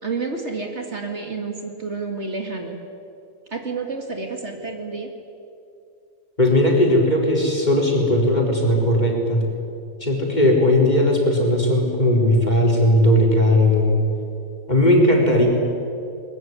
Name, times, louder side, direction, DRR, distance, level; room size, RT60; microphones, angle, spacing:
voice 1, 0.0-2.8 3.5-5.1, right 4 dB, 50° right, 4 dB, 2.3 m, -29 dB
voice 2, 6.4-9.4 10.0-14.0 14.7-15.5, left 1 dB, 30° left, 0 dB, 4.4 m, -17 dB
22.0 x 21.0 x 9.6 m, 2.6 s
omnidirectional pair, 1.5 m